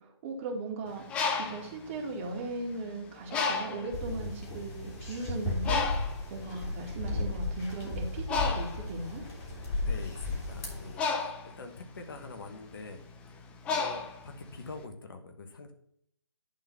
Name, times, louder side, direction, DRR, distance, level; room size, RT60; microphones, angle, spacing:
voice 1, 0.0-5.9 6.3-9.2, right 3 dB, 30° right, 0 dB, 2.1 m, -38 dB
Bird, 0.9-2.8 3.3-4.0 4.7-4.8 5.1-14.8, left 4 dB, 10° left, 0.4 m, -34 dB
sound 1, 3.9-11.0, left 2 dB, 30° left, 2.9 m, -35 dB
voice 2, 9.7-15.7, left 3 dB, 50° left, 6 dB, 1.3 m, -45 dB
11.0 x 4.0 x 5.5 m, 0.69 s
figure-of-eight pair, 140°, 14 cm